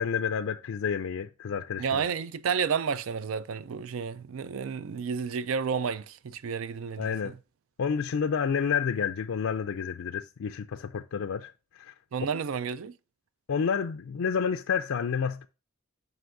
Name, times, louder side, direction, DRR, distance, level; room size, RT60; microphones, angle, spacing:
voice 1, 0.0-2.0 7.0-7.3 7.8-11.9 13.5-15.5, left 6 dB, 85° left, 0.4 m, -29 dB
voice 2, 1.8-7.3 12.1-12.9, right 6 dB, 85° right, 0.4 m, -31 dB
7.9 x 5.4 x 2.5 m
head